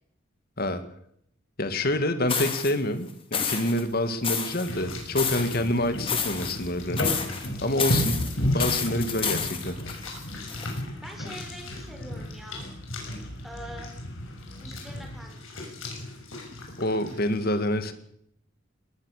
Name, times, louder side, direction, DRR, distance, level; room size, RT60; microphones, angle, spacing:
voice 1, 1.6-7.1 7.6-8.3 8.5-10.0 16.8-17.9, left 1 dB, 50° left, 9 dB, 2.1 m, -27 dB
sound 1, 2.3-2.7 3.3-3.8 4.2-5.6 6.0-6.7 7.0-7.5 7.8-10.8, left 6 dB, 25° left, 2.7 m, -30 dB
sound 2, 4.4-17.4, left 2 dB, 85° left, 6.6 m, -40 dB
sound 3, 4.7-15.2, equal, 65° left, 5.1 m, -34 dB
voice 2, 11.0-12.6 12.9-13.0 13.4-13.9 14.6-15.7, equal, ahead, 2 dB, 5.1 m, -45 dB
20.5 x 19.0 x 6.7 m, 0.71 s
head